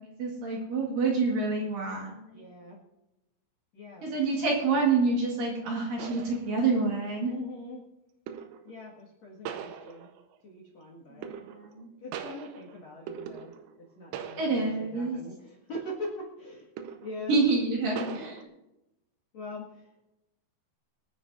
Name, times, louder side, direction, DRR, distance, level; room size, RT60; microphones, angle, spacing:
voice 1, 0.2-2.4 4.0-7.3 11.1-11.9 14.4-15.2 17.3-18.2, right 4 dB, 60° right, -1 dB, 3.0 m, -27 dB
voice 2, 2.3-2.8 3.7-4.1 7.2-7.8 8.6-10.1 10.4-11.3 12.0-13.5 13.8-16.7 17.0-17.4 17.9-18.2 19.3-19.9, left 1 dB, 50° left, -2 dB, 2.6 m, -42 dB
sound 1, 6.0-6.9 8.3-8.8 9.5-10.4 11.2-11.8 12.1-13.9 14.1-14.9 15.3-15.4 16.8-17.3 18.0-18.4, right 8 dB, 80° right, 2.9 m, -41 dB
25.5 x 9.4 x 2.6 m, 0.95 s
omnidirectional pair, 5.2 m